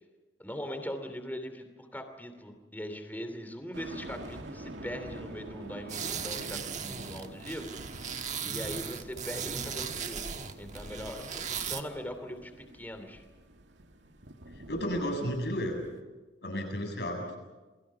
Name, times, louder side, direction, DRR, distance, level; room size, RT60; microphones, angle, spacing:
voice 1, 0.4-10.3 10.6-13.2, equal, 10° left, 7 dB, 2.9 m, -41 dB
sound 1, 3.7-16.0, right 1 dB, 85° right, 2.3 m, -47 dB
sound 2, 5.9-11.8, right 7 dB, 40° right, 1.5 m, -37 dB
voice 2, 14.7-15.8 16.4-17.4, equal, 65° left, 2 dB, 7.4 m, -32 dB
29.0 x 22.5 x 5.8 m, 1.2 s
head